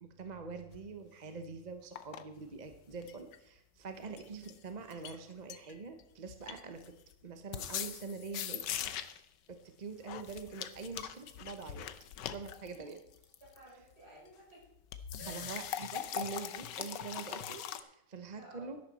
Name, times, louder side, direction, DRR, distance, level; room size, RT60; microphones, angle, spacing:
voice 1, 0.0-6.9 7.2-8.6 9.5-11.9 12.3-13.0 15.3-18.8, right 4 dB, 35° right, 7 dB, 0.8 m, -45 dB
sound 1, 0.7-0.8 2.0-2.2 2.7-3.4 4.2-4.6 4.9-5.2 5.5-6.0 6.3-7.1 7.5-9.3 10.0-13.6 14.9-17.8, left 10 dB, 90° left, 1.4 m, -41 dB
voice 2, 13.4-14.7 15.2-15.6 18.4-18.8, right 1 dB, 65° right, -5 dB, 6.1 m, -54 dB
12.5 x 11.5 x 4.2 m, 0.80 s
omnidirectional pair, 1.8 m